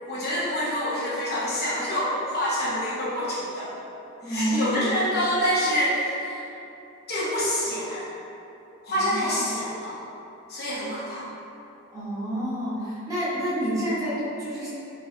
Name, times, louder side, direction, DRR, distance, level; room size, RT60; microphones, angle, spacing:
voice 1, 0.0-3.7 4.2-6.4 7.1-8.1 8.8-10.0 10.5-11.2, equal, 50° left, -9 dB, 0.8 m, -26 dB
voice 2, 4.2-5.0 8.9-9.5 10.8-11.0 11.9-14.7, right 1 dB, 15° right, -12 dB, 1.2 m, -29 dB
4.6 x 2.3 x 2.7 m, 2.9 s
head